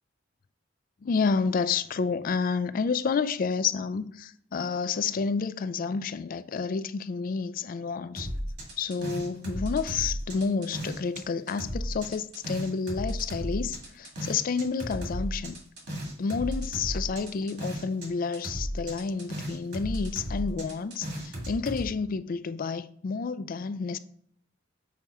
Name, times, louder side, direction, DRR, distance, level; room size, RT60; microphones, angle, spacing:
voice 1, 1.0-8.3 8.8-15.6 16.2-24.0, left 5 dB, 45° left, 0.4 m, -30 dB
sound 1, 8.2-11.2 11.5-18.1 18.3-21.9, equal, 60° right, 1.9 m, -34 dB
7.0 x 2.9 x 4.7 m
head